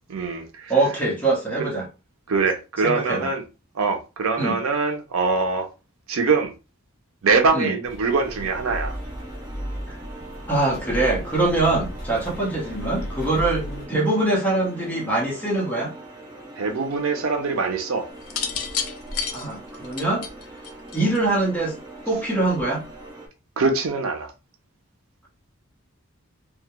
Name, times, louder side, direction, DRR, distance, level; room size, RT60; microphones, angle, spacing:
voice 1, 0.1-0.7 1.6-1.7 2.3-3.4 3.8-5.7 6.1-6.5 7.2-9.0 16.6-18.1 23.6-24.3, right 4 dB, 85° right, 0.5 m, -23 dB
voice 2, 0.7-1.9 2.8-3.3 4.4-4.6 7.5-7.7 9.9-10.0 10.5-15.9 19.3-20.2 20.9-21.8 22.1-22.8, right 2 dB, 10° left, 0.7 m, -23 dB
sound 1, 7.8-13.9, equal, 45° left, 0.7 m, -34 dB
sound 2, 8.1-23.3, right 2 dB, 20° right, 0.4 m, -42 dB
sound 3, 18.2-21.4 22.5-22.8, left 6 dB, 85° left, 0.4 m, -30 dB
2.3 x 2.1 x 2.8 m
head